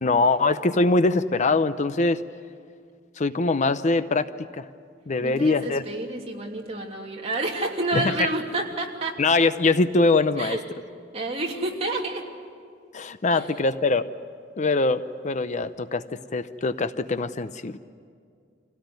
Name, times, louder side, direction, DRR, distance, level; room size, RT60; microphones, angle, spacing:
voice 1, 0.0-2.2 3.2-4.7 5.1-5.8 7.9-8.1 9.2-10.6 12.9-14.1 14.6-17.8, left 3 dB, 40° left, 12 dB, 0.6 m, -23 dB
voice 2, 5.2-9.2 10.4-10.6 11.1-12.3 13.3-13.7, right 2 dB, 35° right, 0 dB, 2.9 m, -29 dB
26.5 x 17.0 x 9.6 m, 2.2 s
head